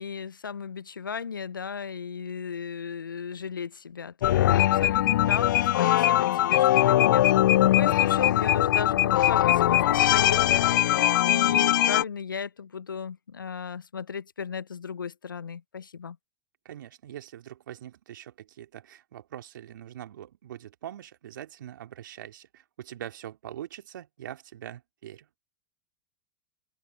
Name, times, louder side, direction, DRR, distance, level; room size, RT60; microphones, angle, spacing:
voice 1, 0.0-7.4 7.7-16.2, left 6 dB, 90° left, 0.8 m, -35 dB
sound 1, 4.2-12.0, left 13 dB, 70° left, 0.4 m, -21 dB
voice 2, 16.6-25.3, right 11 dB, 75° right, 2.5 m, -43 dB
open air
hypercardioid pair, 90°, 11 cm